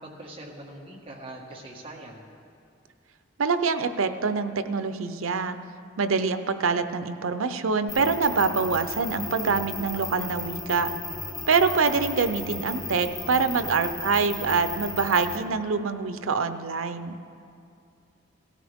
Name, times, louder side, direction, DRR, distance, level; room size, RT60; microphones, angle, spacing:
voice 1, 0.0-2.3 13.2-13.6, right 1 dB, 25° right, -3 dB, 1.7 m, -43 dB
voice 2, 3.4-5.6 6.0-10.9 11.5-17.2, right 5 dB, 90° right, 10 dB, 0.6 m, -25 dB
sound 1, 7.9-15.4, left 3 dB, 20° left, 1.3 m, -35 dB
17.5 x 14.0 x 3.6 m, 2.5 s
head